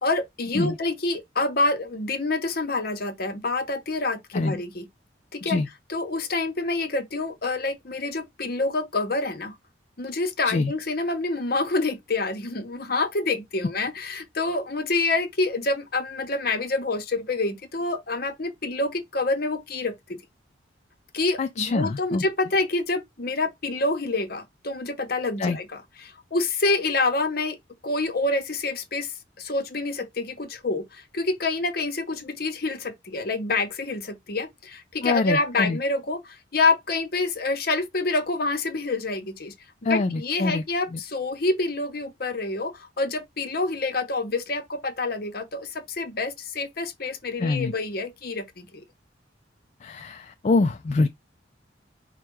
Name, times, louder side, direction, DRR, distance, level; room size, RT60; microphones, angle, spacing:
voice 1, 0.0-4.9 5.3-5.6 5.9-9.5 10.0-20.2 21.1-27.6 27.8-39.5 39.9-48.8, left 3 dB, 55° left, 0.9 m, -27 dB
voice 2, 21.4-22.2 25.4-25.6 35.0-35.8 39.8-40.6 40.9-41.0 47.4-47.7 49.8-51.1, left 3 dB, 40° left, 0.3 m, -25 dB
4.9 x 2.2 x 4.4 m
head